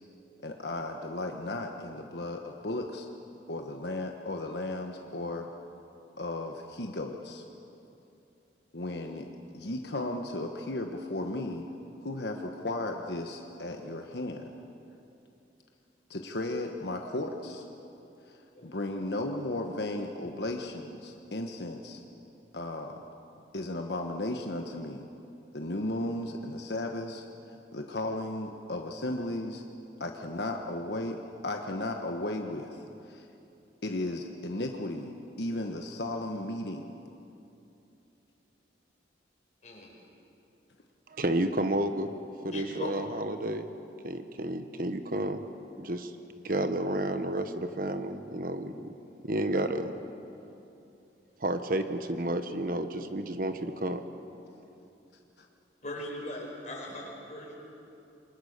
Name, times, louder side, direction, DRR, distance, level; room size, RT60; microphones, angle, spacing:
voice 1, 0.4-3.1 3.5-5.5 6.2-7.4 8.7-9.3 9.5-11.7 12.0-14.5 16.1-17.6 18.2-22.0 22.5-23.0 23.5-25.1 25.5-27.2 27.7-29.6 30.0-33.3 33.8-36.9 55.4-55.5, left 1 dB, 65° left, 3 dB, 1.4 m, -35 dB
voice 2, 41.2-42.1 42.4-43.7 44.0-45.4 45.8-46.1 46.4-48.9 49.3-49.9 51.4-54.0, right 1 dB, 50° right, 8 dB, 1.2 m, -31 dB
voice 3, 42.5-42.9 55.8-57.6, left 1 dB, 40° left, -1 dB, 5.4 m, -39 dB
28.5 x 23.5 x 6.7 m, 2.8 s
head